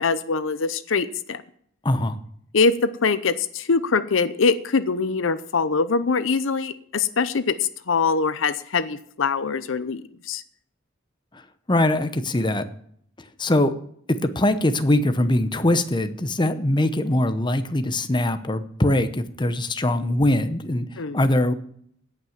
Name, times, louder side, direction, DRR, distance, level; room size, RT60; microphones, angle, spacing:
voice 1, 0.0-1.4 2.5-7.6 7.9-10.4 21.0-21.2, left 4 dB, 70° left, 14 dB, 0.7 m, -23 dB
voice 2, 1.8-2.2 11.7-12.6 13.4-13.7 14.1-20.9 21.1-21.5, left 1 dB, 25° left, 10 dB, 0.8 m, -22 dB
17.0 x 5.8 x 7.3 m, 0.65 s
head